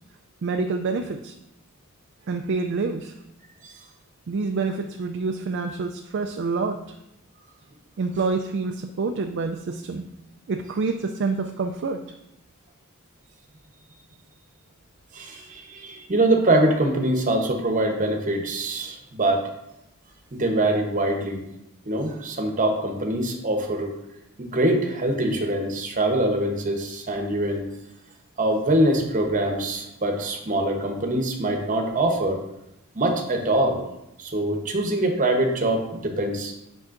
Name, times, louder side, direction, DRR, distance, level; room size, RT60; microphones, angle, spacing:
voice 1, 0.4-1.3 2.3-3.1 4.3-6.8 8.0-10.1 10.5-12.0, right 4 dB, 55° right, 5 dB, 0.3 m, -27 dB
voice 2, 15.1-19.4 20.3-21.4 21.9-23.9 24.4-27.7 28.4-32.4 32.9-33.8 34.2-36.5, right 1 dB, 35° right, 2 dB, 0.9 m, -23 dB
8.4 x 5.5 x 2.5 m, 0.85 s
head